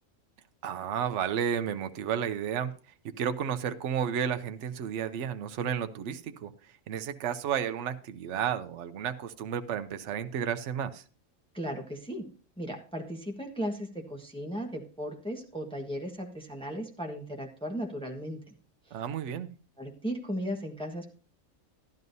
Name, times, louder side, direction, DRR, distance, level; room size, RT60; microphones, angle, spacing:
voice 1, 0.6-2.7 3.0-6.5 6.9-11.0 18.9-19.5, right 8 dB, 65° right, 1.0 m, -32 dB
voice 2, 11.5-12.3 12.6-18.4 18.9-19.0 19.8-21.1, equal, 5° left, 1.3 m, -36 dB
13.5 x 11.0 x 2.7 m
omnidirectional pair, 1.4 m